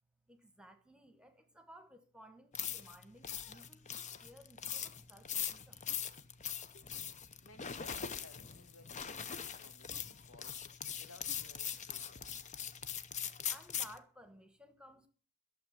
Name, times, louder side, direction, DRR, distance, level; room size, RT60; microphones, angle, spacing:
voice 1, 0.3-5.8 13.5-15.1, equal, 5° right, 1.2 m, -58 dB
sound 1, 2.5-14.0, left 8 dB, 30° left, 0.7 m, -41 dB
voice 2, 7.4-12.3, left 2 dB, 75° left, 1.8 m, -60 dB
12.0 x 7.2 x 7.4 m
head